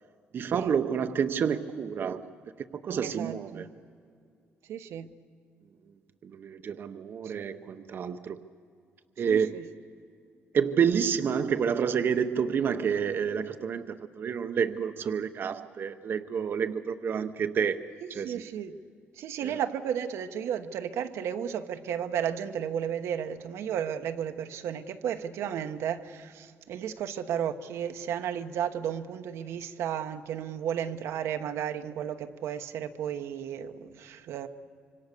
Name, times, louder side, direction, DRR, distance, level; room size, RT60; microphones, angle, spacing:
voice 1, 0.3-2.3 2.8-3.7 6.2-8.4 9.2-9.7 10.5-18.4 19.4-19.6, right 7 dB, 50° right, 0.7 m, -29 dB
voice 2, 3.0-3.7 4.7-5.1 9.3-9.6 18.0-18.7 19.2-34.5, right 9 dB, 85° right, 1.0 m, -33 dB
26.0 x 24.5 x 6.7 m
cardioid pair, 115°, 5 cm